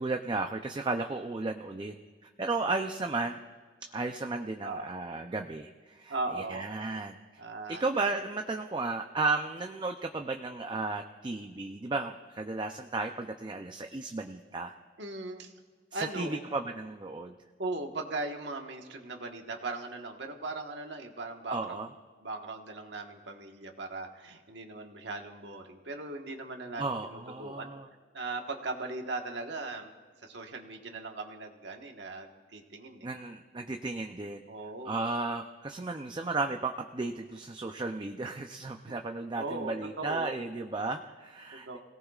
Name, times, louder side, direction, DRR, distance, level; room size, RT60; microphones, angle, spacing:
voice 1, 0.0-1.9 2.2-3.4 3.9-7.2 7.7-14.7 15.9-17.3 21.5-21.9 26.8-27.9 33.0-34.5 34.8-41.8, right 3 dB, 25° right, 5 dB, 0.5 m, -34 dB
voice 2, 6.1-6.6 7.4-7.8 15.0-15.5 15.9-16.4 17.6-21.9 22.2-27.7 28.1-29.9 30.2-33.1 34.5-34.9 38.9-39.0 39.4-40.3 41.5-41.8, right 2 dB, 75° right, 3 dB, 1.4 m, -38 dB
28.5 x 18.0 x 2.4 m, 1.5 s
head